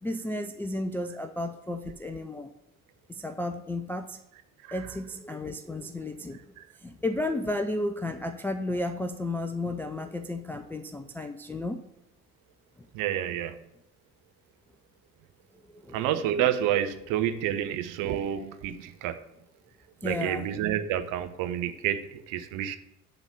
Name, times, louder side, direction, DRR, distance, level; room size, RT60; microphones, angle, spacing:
voice 1, 0.0-2.5 3.1-4.2 4.7-6.5 6.8-11.8 15.8-16.1 20.0-20.5, left 1 dB, 5° left, 5 dB, 0.4 m, -33 dB
voice 2, 12.9-13.5 15.9-19.2 20.0-22.8, right 10 dB, 50° right, 9 dB, 0.9 m, -29 dB
10.5 x 4.0 x 7.2 m, 0.82 s
figure-of-eight pair, 60°, 43 cm